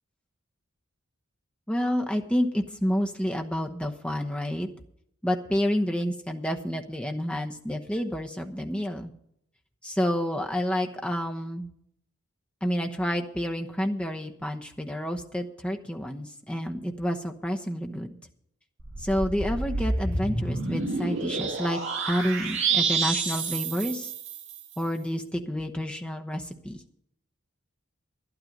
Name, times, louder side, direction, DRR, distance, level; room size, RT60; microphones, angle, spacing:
voice 1, 1.7-4.7 5.2-9.1 9.8-11.7 12.6-18.2 19.0-21.8 22.0-24.1 24.8-26.8, equal, 5° left, 3 dB, 1.0 m, -29 dB
sound 1, 18.8-24.6, right 4 dB, 60° right, 2.3 m, -29 dB
12.0 x 11.5 x 5.3 m, 0.72 s
head